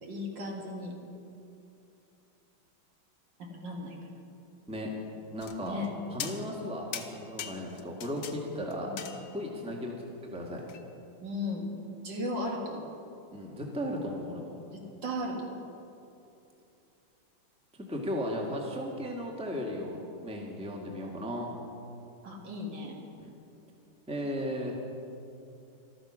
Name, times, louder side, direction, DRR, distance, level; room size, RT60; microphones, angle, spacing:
voice 1, 0.0-0.9 3.4-4.0 5.7-5.9 8.9-9.0 11.2-11.7 12.0-12.9 14.7-15.6 22.2-23.0, left 1 dB, 60° right, 0 dB, 2.4 m, -36 dB
voice 2, 5.3-5.8 6.1-9.9 10.2-10.6 13.3-14.5 17.8-21.5 23.2-23.3 24.1-24.7, equal, 5° right, -1 dB, 1.5 m, -36 dB
sound 1, 5.4-5.9 6.2-6.7 6.9-8.4 8.7-9.6 10.7-10.8, left 9 dB, 90° left, 1.8 m, -40 dB
14.0 x 13.0 x 6.2 m, 2.8 s
omnidirectional pair, 2.3 m